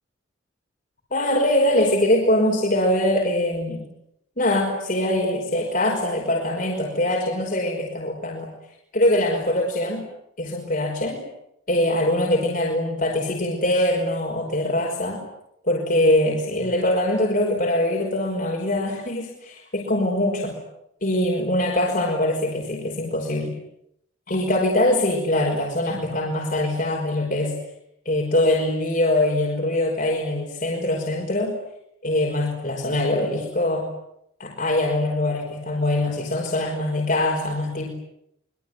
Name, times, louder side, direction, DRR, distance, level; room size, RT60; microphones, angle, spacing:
voice 1, 1.1-3.8 4.4-8.5 8.9-10.1 10.4-11.2 11.7-15.2 15.6-20.6 21.0-23.6 24.3-27.5 28.1-31.6 32.0-33.9 34.4-37.9, left 1 dB, 40° left, -1 dB, 5.4 m, -23 dB
25.5 x 23.5 x 9.7 m, 0.77 s
head